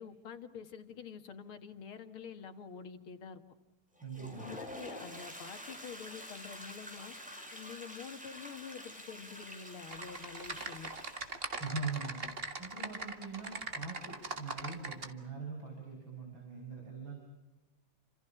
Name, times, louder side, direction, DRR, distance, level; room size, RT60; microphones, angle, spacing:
voice 1, 0.0-3.4 4.2-7.1 7.5-10.9, left 7 dB, 85° left, 8 dB, 2.6 m, -47 dB
Toilet flush, 4.0-11.6, equal, 5° right, 5.2 m, -48 dB
voice 2, 4.0-4.6 11.6-12.2 12.6-17.1, right 4 dB, 65° right, 1 dB, 6.8 m, -42 dB
Typing, 9.9-15.1, right 3 dB, 30° right, 1.9 m, -41 dB
30.0 x 27.0 x 5.9 m, 1.0 s
omnidirectional pair, 2.3 m